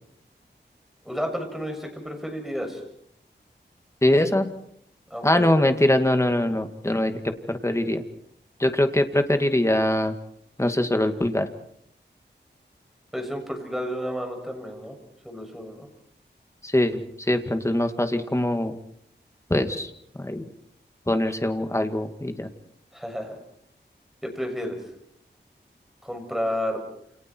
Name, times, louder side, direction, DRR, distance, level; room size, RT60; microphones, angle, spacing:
voice 1, 1.1-2.8 5.1-5.5 13.1-15.0 15.2-15.9 22.9-23.4 24.2-24.8 26.0-26.8, equal, ahead, 3 dB, 7.2 m, -31 dB
voice 2, 4.0-4.5 5.2-8.0 8.6-10.1 10.6-11.5 16.6-18.8 19.5-19.9 20.2-20.4 21.1-22.5, left 1 dB, 15° left, 6 dB, 2.2 m, -23 dB
29.0 x 28.5 x 4.7 m, 0.71 s
wide cardioid pair, 95°, 19 cm